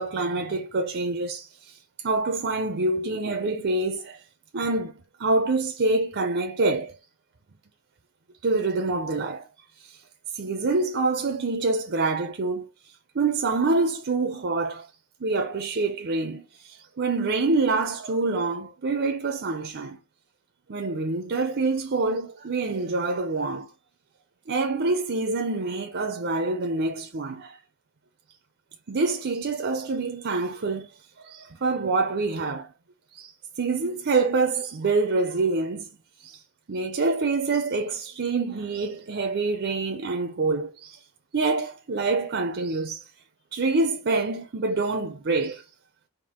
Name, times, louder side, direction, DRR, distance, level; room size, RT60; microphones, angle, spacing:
voice 1, 0.0-1.8 2.0-4.2 4.5-6.9 8.4-9.5 9.8-10.0 10.3-12.7 13.1-14.9 15.2-20.0 20.7-23.7 24.5-27.6 28.9-30.9 31.2-32.7 33.1-35.9 36.2-36.4 36.7-41.0 41.3-43.0 43.5-45.6, right 3 dB, 50° right, 0.6 m, -26 dB
4.3 x 2.7 x 3.6 m
head